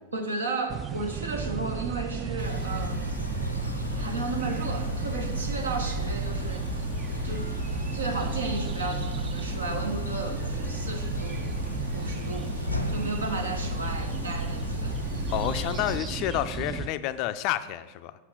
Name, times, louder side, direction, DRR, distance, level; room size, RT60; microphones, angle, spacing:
voice 1, 0.1-3.1 4.0-6.7 7.2-7.5 7.9-11.6 11.9-12.6 12.9-15.0, right 3 dB, 75° right, 4 dB, 1.1 m, -34 dB
sound 1, 0.7-16.9, right 7 dB, 25° right, 0.5 m, -34 dB
sound 2, 2.4-16.0, left 2 dB, 90° left, 0.6 m, -33 dB
voice 2, 15.3-18.1, left 13 dB, 45° left, 12 dB, 0.4 m, -29 dB
8.2 x 5.6 x 6.2 m, 1.2 s
figure-of-eight pair, 90°, 0 cm